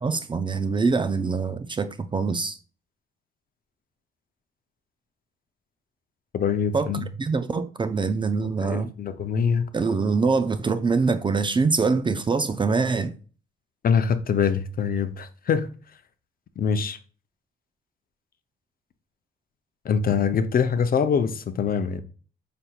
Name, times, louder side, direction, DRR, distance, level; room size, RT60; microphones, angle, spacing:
voice 1, 0.0-2.6 6.7-6.9 7.2-8.9 9.7-13.1, right 4 dB, 25° right, 0.4 m, -24 dB
voice 2, 6.3-7.1 8.6-9.7 13.8-15.7 16.6-17.0 19.8-22.0, left 6 dB, 45° left, 0.6 m, -24 dB
5.1 x 4.3 x 2.3 m
cardioid pair, 90°, 20 cm